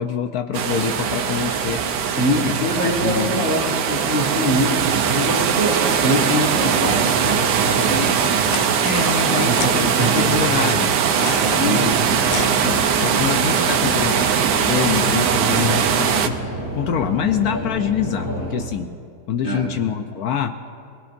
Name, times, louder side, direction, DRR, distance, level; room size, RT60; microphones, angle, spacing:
voice 1, 0.0-1.8 2.4-3.5 8.8-11.0 11.6-11.9 12.6-14.3 14.6-19.0 19.3-20.6, left 8 dB, 70° left, 7 dB, 1.1 m, -25 dB
sound 1, 0.5-16.3, right 7 dB, 85° right, 1.4 m, -20 dB
voice 2, 2.0-8.7 9.3-10.7 11.2-11.9 15.4-15.6 19.4-19.7, equal, 40° right, -3 dB, 3.0 m, -24 dB
sound 2, 8.4-8.6 9.5-9.8 11.1-13.2, left 10 dB, 90° left, 1.2 m, -32 dB
sound 3, 11.9-18.7, equal, 10° right, 2.4 m, -30 dB
25.0 x 18.0 x 2.6 m, 2.2 s
omnidirectional pair, 1.8 m